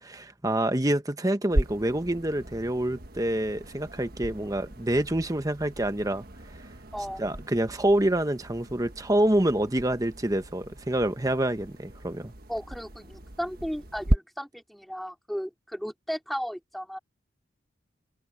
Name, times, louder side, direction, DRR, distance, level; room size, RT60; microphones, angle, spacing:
voice 1, 0.0-6.2 7.2-12.3, right 1 dB, 20° right, 1.1 m, -27 dB
sound 1, 1.5-14.2, right 1 dB, 50° right, 1.6 m, -36 dB
voice 2, 6.9-7.2 12.5-17.0, equal, ahead, 3.8 m, -35 dB
head